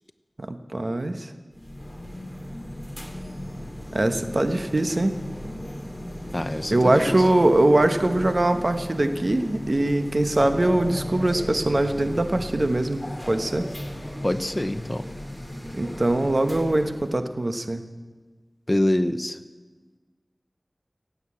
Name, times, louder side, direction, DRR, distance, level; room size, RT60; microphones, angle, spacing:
voice 1, 0.4-1.3 3.9-5.1 6.7-13.6 15.7-17.8, right 1 dB, 55° right, 8 dB, 1.1 m, -22 dB
sound 1, 1.5-17.1, left 1 dB, 10° left, 2.6 m, -36 dB
voice 2, 6.3-7.2 14.2-15.0 18.7-19.4, left 1 dB, 30° left, 11 dB, 0.7 m, -25 dB
16.5 x 8.4 x 8.5 m, 1.4 s
wide cardioid pair, 50°, 0 cm